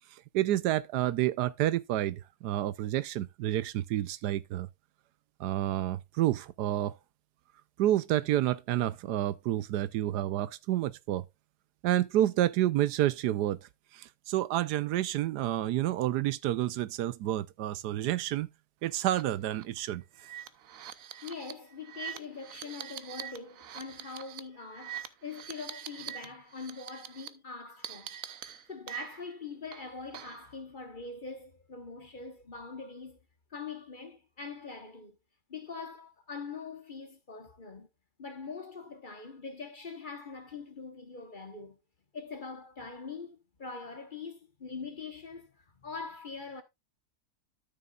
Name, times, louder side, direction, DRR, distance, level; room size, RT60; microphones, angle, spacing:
voice 1, 0.3-4.7 5.4-6.9 7.8-11.2 11.8-13.6 13.9-18.5 18.8-20.0, right 13 dB, 90° right, 1.2 m, -29 dB
sound 1, 19.0-19.2 19.5-19.6 20.2-26.3 26.5-27.3 27.8-29.4 29.7-30.5, right 10 dB, 60° right, 1.0 m, -44 dB
voice 2, 21.2-28.2 28.7-33.2 33.5-35.2 35.5-37.9 38.2-41.8 42.1-46.6, left 4 dB, 35° left, 1.1 m, -43 dB
12.5 x 6.7 x 2.4 m
omnidirectional pair, 1.7 m